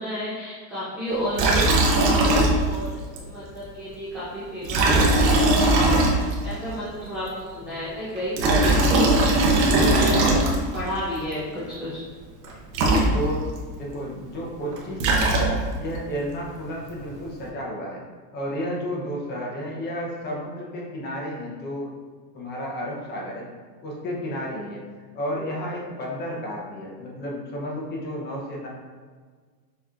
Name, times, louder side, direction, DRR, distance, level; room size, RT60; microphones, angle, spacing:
voice 1, 0.0-2.9 3.1-5.8 6.4-9.0 9.3-12.0, equal, 5° right, -13 dB, 0.4 m, -32 dB
Liquid, 1.3-2.9 3.2-3.3 4.6-6.5 8.2-10.8 12.4-12.5 12.7-13.6 14.7-15.8, right 2 dB, 70° right, 1.0 m, -19 dB
voice 2, 12.8-13.5 13.7-15.5 15.8-18.0 18.3-21.9 22.3-23.5 23.8-24.8 25.1-28.7, equal, 20° left, -3 dB, 0.7 m, -32 dB
6.3 x 3.0 x 2.4 m, 1.5 s
supercardioid pair, 150°, 50 cm